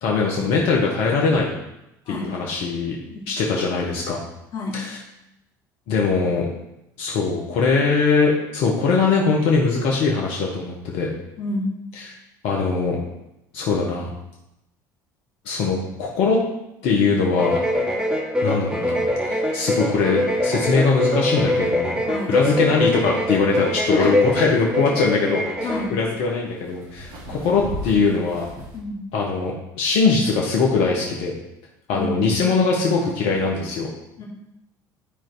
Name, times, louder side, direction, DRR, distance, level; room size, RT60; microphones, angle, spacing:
voice 1, 0.0-1.5 2.1-3.0 3.3-4.2 4.7-5.0 5.9-6.5 7.0-11.1 11.9-12.0 12.4-13.0 13.5-14.1 15.4-16.4 16.8-17.6 18.4-19.0 19.3-22.0 22.3-28.5 29.1-31.3 31.9-33.9, left 4 dB, 65° left, -1 dB, 1.4 m, -21 dB
voice 2, 4.5-4.8 11.4-11.6 22.0-22.3 23.9-24.2 25.6-26.0 28.7-29.0 31.9-32.5 34.2-34.3, left 2 dB, 45° left, -5 dB, 2.7 m, -28 dB
sound 1, 17.3-25.9, left 1 dB, 10° right, 3.2 m, -23 dB
sound 2, 23.9-28.8, equal, 55° right, 3.2 m, -38 dB
10.5 x 4.6 x 4.8 m, 0.88 s
hypercardioid pair, 65°, 11 cm